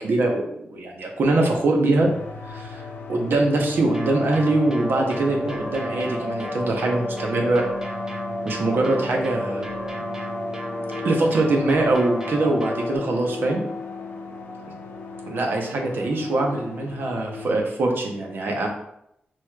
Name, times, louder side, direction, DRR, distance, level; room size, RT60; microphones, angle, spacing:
voice 1, 0.0-2.1 2.4-2.8 3.1-7.6 8.4-9.7 11.0-13.6 15.3-18.7, right 2 dB, 75° right, 1 dB, 0.8 m, -23 dB
sound 1, 2.0-17.6, left 4 dB, 80° left, 0.6 m, -36 dB
sound 2, 3.9-13.0, equal, 15° right, 0.5 m, -32 dB
6.2 x 3.0 x 2.3 m, 0.76 s
wide cardioid pair, 140°, 4 cm